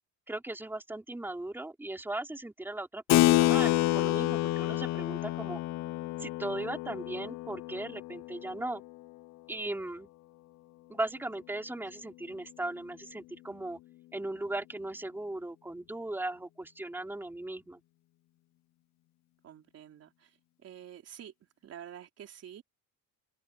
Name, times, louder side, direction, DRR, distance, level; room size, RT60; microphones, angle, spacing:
voice 1, 0.3-5.6 6.2-8.8 9.5-10.1 10.9-13.8 14.1-17.8, right 2 dB, 5° right, 3.4 m, -38 dB
Keyboard (musical), 3.1-9.1, left 17 dB, 50° left, 0.6 m, -28 dB
voice 2, 19.4-20.3 20.6-21.3 21.6-22.6, right 10 dB, 45° right, 3.8 m, -48 dB
open air
cardioid pair, 150°, 34 cm